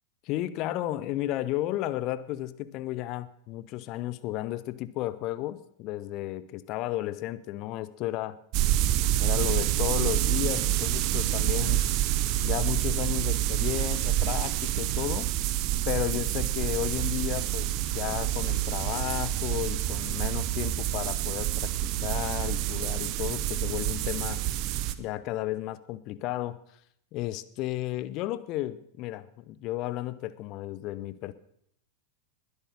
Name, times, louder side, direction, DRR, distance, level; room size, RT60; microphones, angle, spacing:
voice 1, 0.2-8.4 9.2-11.8 12.4-15.3 15.9-24.4 25.0-26.6 27.1-31.3, left 15 dB, 40° left, 16 dB, 0.8 m, -33 dB
sound 1, 8.5-24.9, right 14 dB, 40° right, 0.8 m, -27 dB
21.0 x 8.3 x 6.5 m, 0.73 s
figure-of-eight pair, 90°, 0 cm